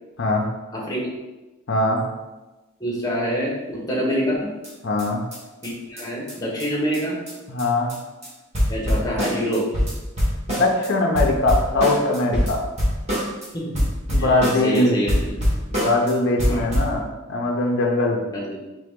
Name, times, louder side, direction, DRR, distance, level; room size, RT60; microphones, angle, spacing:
voice 1, 0.7-1.1 2.8-4.5 5.6-7.2 8.7-9.7 13.5-13.9 14.2-15.4 16.4-16.7 18.3-18.6, equal, 15° left, -4 dB, 1.0 m, -26 dB
voice 2, 1.7-2.0 4.8-5.2 7.5-7.9 10.5-12.6 14.1-15.0 15.7-18.2, left 2 dB, 50° left, 0 dB, 0.6 m, -21 dB
sound 1, 4.6-4.7 5.0-5.1 5.3-5.4 5.6-5.7 6.0-6.1 6.3-6.4 6.6-6.7 6.9-7.0 7.3-7.4 7.6-8.0 8.2-8.3 8.5-10.9 11.1-13.5 13.7-14.8 15.1-16.1 16.4-16.9, equal, 30° right, 1.3 m, -24 dB
3.8 x 3.4 x 3.6 m, 1.1 s
head